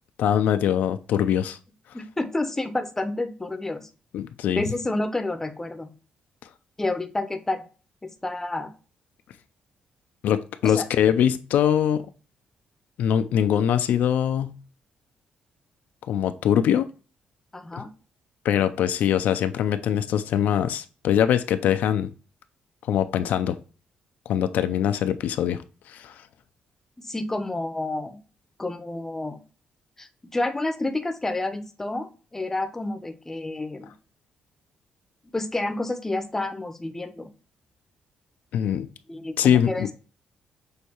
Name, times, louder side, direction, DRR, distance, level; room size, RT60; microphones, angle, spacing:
voice 1, 0.2-1.6 4.1-4.6 10.2-12.1 13.0-14.6 16.1-16.9 17.8-17.9 18.4-22.1 22.9-23.6 24.3-25.6 25.9-26.1 38.5-38.9 39.4-39.9, left 9 dB, 80° left, 10 dB, 0.3 m, -22 dB
voice 2, 1.9-3.9 4.6-5.9 6.8-7.7 8.0-8.7 10.6-10.9 17.5-17.9 27.0-28.2 28.6-29.4 30.0-33.9 35.3-37.3 39.1-39.9, left 2 dB, 15° left, 8 dB, 0.6 m, -29 dB
6.3 x 2.6 x 2.8 m, 0.36 s
cardioid pair, 110°, 3 cm